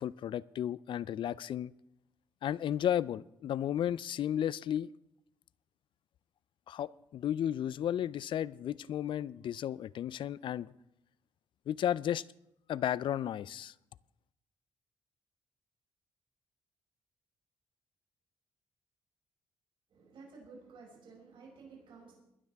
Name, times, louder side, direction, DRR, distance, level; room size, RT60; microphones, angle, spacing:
voice 1, 0.0-1.7 2.4-4.9 6.7-10.7 11.7-12.3 12.7-13.7, left 10 dB, 65° left, 0.4 m, -33 dB
voice 2, 19.9-22.2, right 4 dB, 70° right, 6.5 m, -53 dB
21.0 x 12.0 x 3.5 m
supercardioid pair, 65°, 9 cm